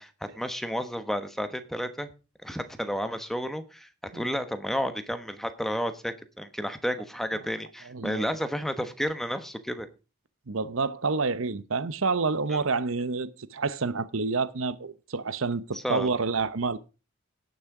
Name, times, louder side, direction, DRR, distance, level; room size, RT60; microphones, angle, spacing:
voice 1, 0.0-2.1 2.4-9.9 12.5-12.6 15.7-16.1, equal, ahead, 1.1 m, -32 dB
voice 2, 7.9-8.3 10.5-16.8, right 4 dB, 70° right, 0.8 m, -28 dB
17.0 x 6.3 x 4.8 m
head